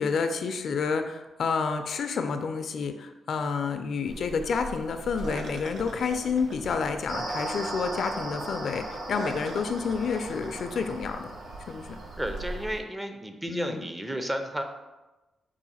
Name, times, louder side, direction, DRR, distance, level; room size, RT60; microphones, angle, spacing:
voice 1, 0.0-11.3 11.7-12.0 13.5-13.9, left 5 dB, 65° left, 7 dB, 0.4 m, -29 dB
sound 1, 4.0-12.8, right 2 dB, 70° right, 0.5 m, -42 dB
sound 2, 7.1-12.6, right 1 dB, 55° right, 0.9 m, -37 dB
voice 2, 12.2-14.6, equal, 15° right, 6 dB, 0.4 m, -32 dB
4.6 x 2.5 x 4.1 m, 1.1 s
cardioid pair, 100°, 0 cm